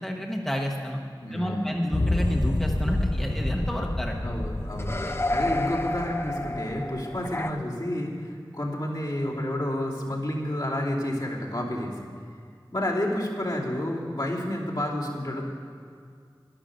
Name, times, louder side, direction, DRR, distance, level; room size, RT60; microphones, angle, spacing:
voice 1, 0.0-1.0 1.3-4.2 5.1-5.2, equal, 5° left, 0 dB, 1.1 m, -30 dB
voice 2, 1.2-1.8 4.2-12.1 12.7-15.5, left 1 dB, 60° left, -5 dB, 2.9 m, -30 dB
sound 1, 1.9-7.5, left 1 dB, 30° left, 0.6 m, -28 dB
11.5 x 11.0 x 6.7 m, 2.2 s
wide cardioid pair, 40°, 8 cm